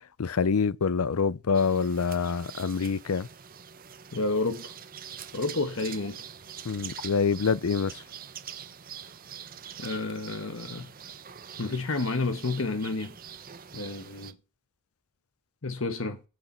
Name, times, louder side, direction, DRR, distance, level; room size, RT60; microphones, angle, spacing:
voice 1, 0.0-3.3 6.6-8.0, left 5 dB, 85° left, 0.6 m, -26 dB
sound 1, 1.5-14.3, right 8 dB, 40° right, 0.8 m, -44 dB
voice 2, 4.1-4.7 5.3-6.2 9.8-10.9 11.6-13.2 13.7-14.4 15.6-16.2, left 3 dB, 65° left, 1.2 m, -30 dB
16.0 x 6.5 x 4.4 m
head